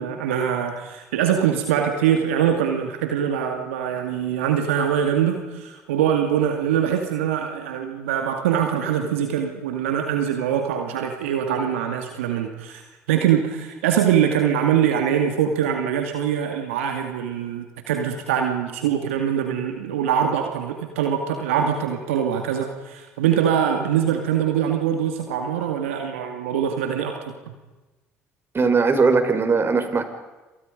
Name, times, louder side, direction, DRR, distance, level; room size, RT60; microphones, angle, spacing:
voice 1, 0.0-12.8 13.1-27.3, right 9 dB, 80° right, 5 dB, 2.3 m, -23 dB
voice 2, 28.5-30.0, right 4 dB, 35° right, 7 dB, 5.1 m, -19 dB
29.0 x 27.5 x 5.3 m, 1.2 s
hypercardioid pair, 55°, 7 cm